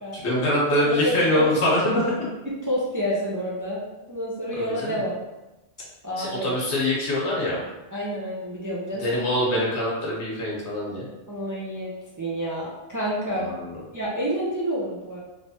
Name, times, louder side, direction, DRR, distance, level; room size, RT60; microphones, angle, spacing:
voice 1, 0.1-2.1 4.5-5.0 6.2-7.6 9.0-11.1 13.4-13.7, left 1 dB, 85° left, -4 dB, 1.3 m, -24 dB
voice 2, 0.9-1.5 2.5-3.8 4.1-5.2 6.0-6.5 7.9-9.1 11.3-11.9 12.2-13.5 13.9-15.2, equal, 25° right, -5 dB, 0.4 m, -28 dB
3.2 x 3.1 x 2.7 m, 1.0 s
omnidirectional pair, 1.1 m